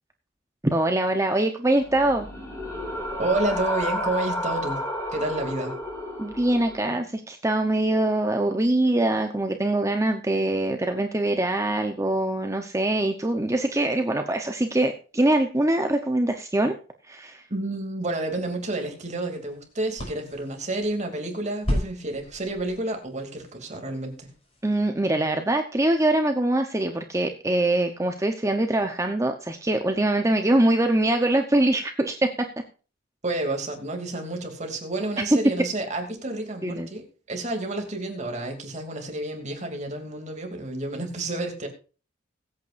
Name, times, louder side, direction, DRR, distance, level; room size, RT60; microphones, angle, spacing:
voice 1, 0.6-2.3 6.2-16.7 17.0-17.4 24.6-32.3 36.6-36.9, right 1 dB, 15° right, 5 dB, 0.9 m, -23 dB
sound 1, 1.8-6.9, equal, 10° left, 6.4 m, -31 dB
voice 2, 3.2-4.8 5.1-5.7 17.5-24.3 33.2-41.7, right 2 dB, 40° right, 4 dB, 2.8 m, -30 dB
sound 2, 18.1-24.7, equal, 30° left, 4.8 m, -36 dB
22.0 x 8.7 x 2.6 m, 0.36 s
head